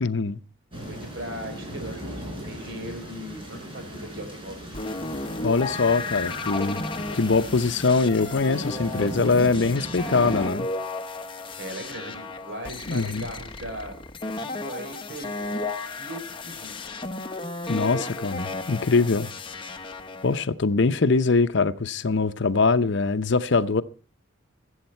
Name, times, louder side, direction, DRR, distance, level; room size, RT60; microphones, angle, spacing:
voice 1, 0.0-0.4 5.4-6.8 7.1-10.7 12.9-13.3 17.7-19.3 20.2-23.8, left 4 dB, 60° left, 0.7 m, -23 dB
sound 1, 0.7-10.5, right 1 dB, 25° right, 4.8 m, -38 dB
voice 2, 0.8-4.8 11.6-13.9 14.3-15.7 16.0-16.7, right 1 dB, 55° right, 4.0 m, -39 dB
sound 2, 4.7-20.5, left 2 dB, 25° left, 1.0 m, -34 dB
21.5 x 8.0 x 4.4 m
head